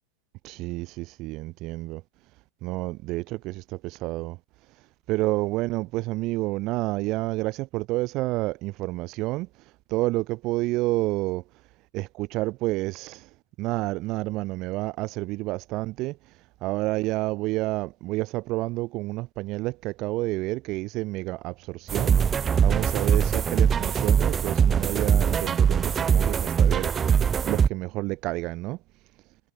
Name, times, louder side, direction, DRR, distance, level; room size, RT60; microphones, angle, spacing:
voice 1, 0.4-2.0 2.6-4.4 4.7-11.4 11.9-28.8, right 20 dB, 40° right, 1.6 m, -30 dB
sound 1, 21.9-27.7, right 7 dB, 20° right, 0.3 m, -22 dB
figure-of-eight pair, 90°, 0 cm